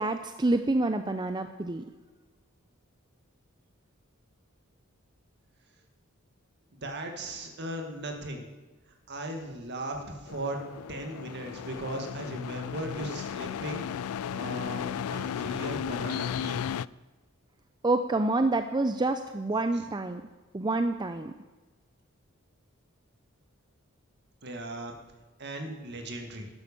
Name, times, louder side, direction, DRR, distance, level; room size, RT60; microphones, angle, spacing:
voice 1, 0.0-1.9 17.8-20.2 20.5-21.3, right 2 dB, 20° right, 8 dB, 0.5 m, -27 dB
voice 2, 6.7-8.5 9.1-10.6 10.9-13.9 14.3-16.7 24.4-25.0 25.4-26.5, right 1 dB, 55° right, 3 dB, 2.1 m, -37 dB
sound 1, 10.3-16.9, left 8 dB, 85° left, 0.3 m, -35 dB
12.5 x 10.5 x 6.9 m, 1.3 s
head